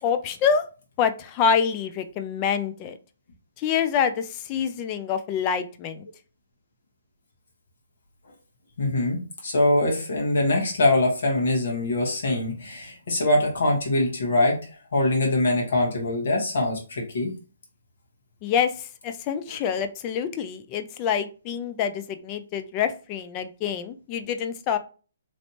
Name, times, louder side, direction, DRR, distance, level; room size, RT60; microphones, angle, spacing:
voice 1, 0.0-0.6 1.0-3.0 3.6-6.1 18.4-24.8, left 7 dB, 30° left, 10 dB, 0.4 m, -26 dB
voice 2, 8.8-14.6 14.9-17.3, left 2 dB, 65° left, -1 dB, 1.4 m, -23 dB
3.1 x 2.7 x 2.9 m, 0.35 s
figure-of-eight pair, 135°, 0 cm